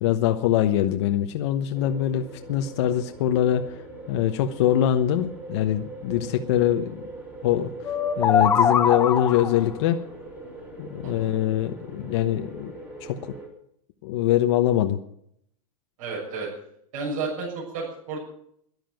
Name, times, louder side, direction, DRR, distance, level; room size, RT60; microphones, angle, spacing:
voice 1, 0.0-3.8 4.1-7.0 7.4-10.0 10.8-12.7 13.0-13.3 14.0-15.0, left 11 dB, 50° left, 6 dB, 1.0 m, -23 dB
sound 1, 1.7-13.5, right 2 dB, 10° right, 2.8 m, -41 dB
sound 2, 7.8-9.7, left 7 dB, 10° left, 0.6 m, -22 dB
voice 2, 16.0-16.5 16.9-18.2, right 4 dB, 60° right, -5 dB, 6.7 m, -32 dB
13.0 x 11.0 x 9.3 m, 0.71 s
supercardioid pair, 170°, 19 cm